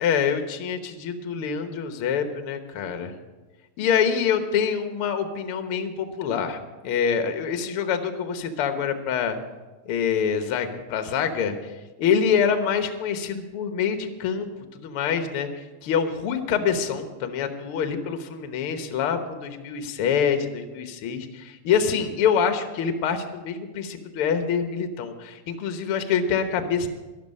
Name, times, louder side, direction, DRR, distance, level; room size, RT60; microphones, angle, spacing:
voice 1, 0.0-3.2 3.8-9.4 9.8-11.7 12.0-26.9, left 7 dB, 60° left, 7 dB, 1.5 m, -26 dB
12.5 x 12.0 x 5.4 m, 1.2 s
omnidirectional pair, 3.7 m